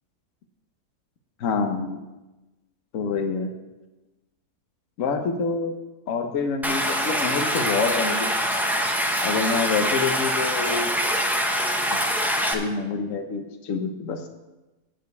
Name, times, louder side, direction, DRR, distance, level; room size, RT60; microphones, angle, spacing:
voice 1, 1.4-2.0 2.9-3.5 5.0-5.7 6.1-8.3 9.2-10.9 12.5-14.2, left 4 dB, 60° left, 6 dB, 1.3 m, -26 dB
Stream, 6.6-12.5, equal, ahead, 0.6 m, -24 dB
9.5 x 5.1 x 8.1 m, 1.1 s
omnidirectional pair, 1.7 m